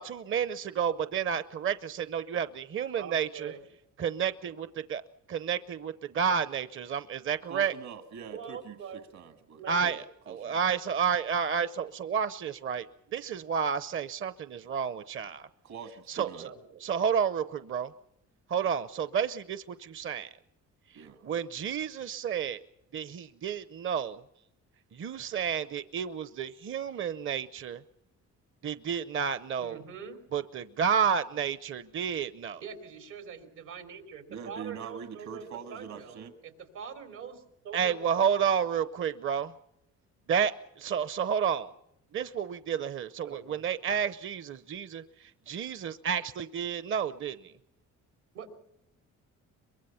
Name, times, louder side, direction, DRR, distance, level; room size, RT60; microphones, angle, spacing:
voice 1, 0.0-3.5 4.0-5.0 5.3-7.7 9.7-12.9 13.1-15.5 16.1-16.5 16.8-17.9 18.5-20.3 21.0-22.6 22.9-24.2 24.9-27.8 28.6-29.8 30.3-32.6 37.7-39.5 40.3-40.5 40.8-41.7 42.1-47.5, right 7 dB, 40° right, 14 dB, 0.7 m, -31 dB
voice 2, 3.0-3.6 8.3-9.0 9.6-9.9 16.4-16.8 29.6-30.2 32.6-38.3 43.2-43.6 48.3-48.6, right 6 dB, 85° right, 6 dB, 3.3 m, -44 dB
voice 3, 7.5-8.8 9.1-10.6 15.6-16.5 20.9-21.3 34.3-36.3, right 7 dB, 65° right, 7 dB, 1.8 m, -44 dB
23.5 x 22.0 x 5.7 m, 0.82 s
cardioid pair, 90°, 30 cm